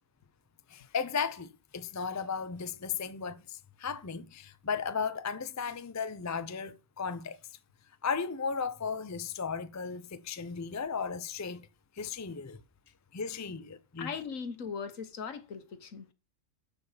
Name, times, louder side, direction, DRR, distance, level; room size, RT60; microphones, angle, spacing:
voice 1, 0.7-7.4 8.0-11.7 12.0-12.6 13.1-14.1, left 5 dB, 25° left, 0.4 m, -35 dB
voice 2, 14.0-16.1, left 6 dB, 75° left, 1.5 m, -39 dB
12.5 x 5.3 x 5.6 m
omnidirectional pair, 1.4 m